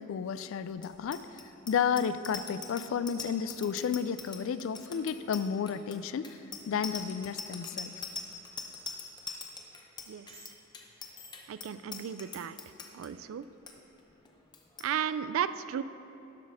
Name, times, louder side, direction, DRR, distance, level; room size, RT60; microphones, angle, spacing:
voice 1, 0.0-1.4 1.7-6.4 6.6-7.9, left 7 dB, 65° left, 13 dB, 0.3 m, -32 dB
Bicycle bell, 0.8-13.1 13.4-13.7 14.0-14.3 14.5-14.9, left 5 dB, 20° left, 0.6 m, -42 dB
voice 2, 11.5-12.6 12.9-13.5 14.8-15.8, right 8 dB, 65° right, 14 dB, 0.3 m, -34 dB
11.5 x 4.1 x 6.2 m, 3.0 s
head